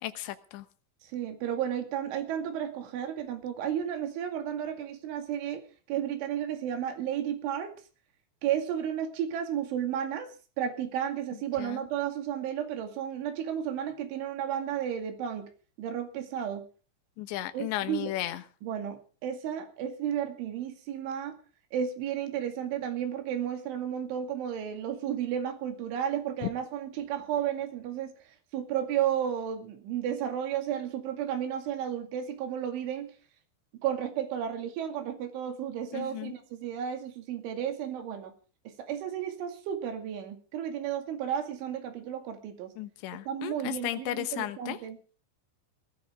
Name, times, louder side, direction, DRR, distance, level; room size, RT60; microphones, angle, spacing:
voice 1, 0.0-0.7 11.6-11.8 17.2-18.4 35.9-36.3 42.8-44.8, left 14 dB, 75° left, 10 dB, 3.3 m, -35 dB
voice 2, 1.0-7.7 8.4-10.3 10.6-15.5 15.8-16.7 17.5-18.1 18.6-21.4 21.7-28.1 28.5-33.1 33.8-38.3 38.8-42.7 43.3-45.0, right 9 dB, 90° right, 6 dB, 4.7 m, -33 dB
20.0 x 14.0 x 3.7 m, 0.37 s
omnidirectional pair, 5.4 m